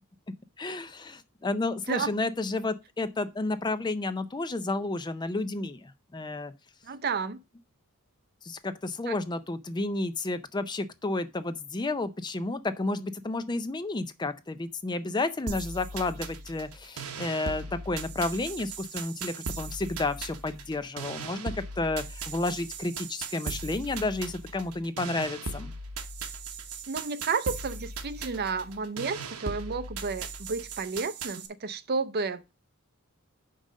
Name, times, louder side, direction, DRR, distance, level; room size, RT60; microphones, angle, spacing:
voice 1, 0.6-6.5 8.4-25.7, left 2 dB, 20° left, 0.4 m, -31 dB
voice 2, 6.9-7.4 9.1-9.2 26.9-32.5, right 4 dB, 45° right, 0.6 m, -31 dB
sound 1, 15.5-31.5, right 4 dB, 85° right, 1.1 m, -38 dB
5.5 x 5.1 x 6.3 m
head